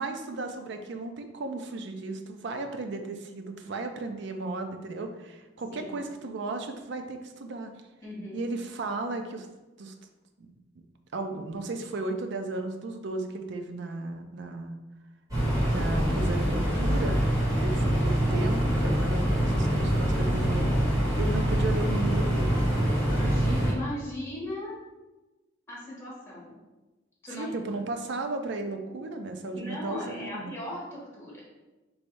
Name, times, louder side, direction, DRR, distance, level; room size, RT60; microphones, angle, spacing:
voice 1, 0.0-7.7 8.3-9.5 9.8-9.9 10.4-10.5 11.1-14.8 15.7-17.3 17.6-20.7 21.2-22.7 27.4-30.6, right 2 dB, 60° right, 6 dB, 0.4 m, -35 dB
voice 2, 5.7-6.0 8.0-8.5 23.1-24.8 25.7-26.5 27.2-27.6 29.5-31.4, left 1 dB, 15° left, -7 dB, 1.3 m, -37 dB
sound 1, 15.3-23.7, equal, 20° right, 1.5 m, -25 dB
3.1 x 2.6 x 4.5 m, 1.1 s
head